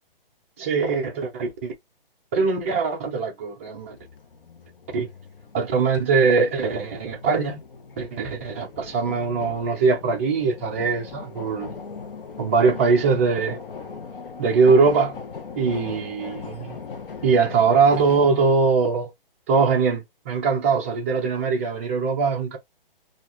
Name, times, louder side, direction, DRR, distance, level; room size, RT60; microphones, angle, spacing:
voice 1, 0.6-1.7 2.3-4.0 4.9-5.1 5.5-7.6 8.0-11.7 12.4-13.6 14.4-15.2 15.6-16.8 17.2-19.1 19.5-22.6, right 4 dB, 15° right, 0.4 m, -21 dB
sound 1, 3.8-18.5, left 5 dB, 65° left, 0.8 m, -39 dB
2.4 x 2.3 x 2.8 m
figure-of-eight pair, 140°, 29 cm